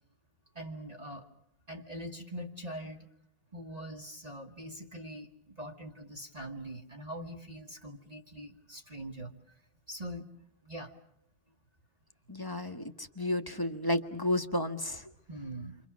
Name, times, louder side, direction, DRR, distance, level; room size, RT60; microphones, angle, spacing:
voice 1, 0.5-1.3 1.7-3.1 3.5-9.3 9.9-10.3 10.6-10.9 15.3-15.8, right 1 dB, 30° right, 0 dB, 2.1 m, -43 dB
voice 2, 12.3-15.1, left 1 dB, 20° left, 6 dB, 1.3 m, -32 dB
29.5 x 25.5 x 6.3 m, 0.77 s
omnidirectional pair, 1.3 m